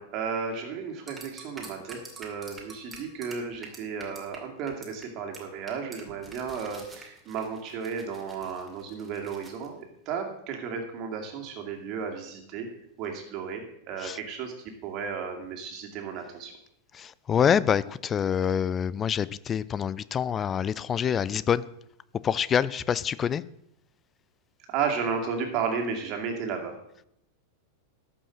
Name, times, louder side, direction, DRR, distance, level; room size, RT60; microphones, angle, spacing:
voice 1, 0.0-12.7 13.0-14.5 14.8-16.5 24.7-26.8, right 6 dB, 40° right, 3 dB, 2.3 m, -33 dB
sound 1, 1.1-4.4 4.7-5.0 5.3-5.4 5.7-9.7, right 3 dB, 10° right, 2.3 m, -46 dB
voice 2, 17.0-21.6 22.2-23.4, left 8 dB, 25° left, 20 dB, 0.4 m, -26 dB
12.5 x 5.5 x 7.5 m, 0.76 s
figure-of-eight pair, 90°, 0 cm